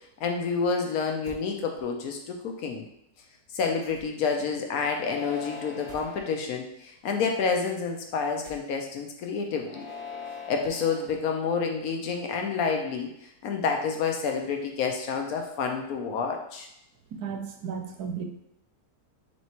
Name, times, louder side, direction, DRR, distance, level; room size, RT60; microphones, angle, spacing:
voice 1, 0.2-2.8 3.5-9.9 10.5-13.1 13.4-16.7, left 5 dB, 70° left, 3 dB, 1.0 m, -29 dB
sound 1, 1.2-1.5 3.8-4.3 5.9-6.1 8.4-9.0, right 3 dB, 35° right, 0.4 m, -48 dB
sound 2, 4.9-6.4 7.1-7.6 9.6-11.1, left 4 dB, 20° left, 1.0 m, -41 dB
voice 2, 17.1-18.2, right 6 dB, 75° right, 4 dB, 1.1 m, -34 dB
3.3 x 3.0 x 4.2 m, 0.79 s
omnidirectional pair, 1.7 m